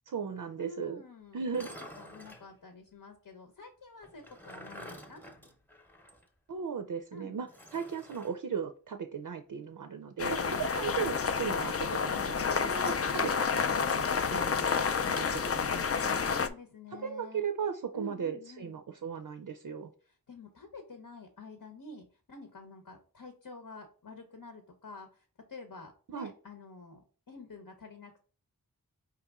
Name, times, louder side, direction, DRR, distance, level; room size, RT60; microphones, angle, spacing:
voice 1, 0.1-1.0 1.3-1.8 6.5-15.8 17.0-19.9 26.1-26.3, right 6 dB, 60° right, 7 dB, 0.5 m, -37 dB
voice 2, 0.6-1.4 2.0-5.2 7.1-7.3 10.2-10.7 15.1-17.4 17.9-18.8 20.1-28.2, left 1 dB, 65° left, 5 dB, 0.8 m, -48 dB
sound 1, 1.4-2.5 4.0-6.3 6.6-6.7 7.5-8.4 10.9-11.8 13.2-13.8, equal, 5° left, 0.7 m, -50 dB
sound 2, 10.2-16.5, left 6 dB, 40° left, 0.4 m, -30 dB
4.9 x 3.0 x 3.5 m, 0.38 s
wide cardioid pair, 55°, 38 cm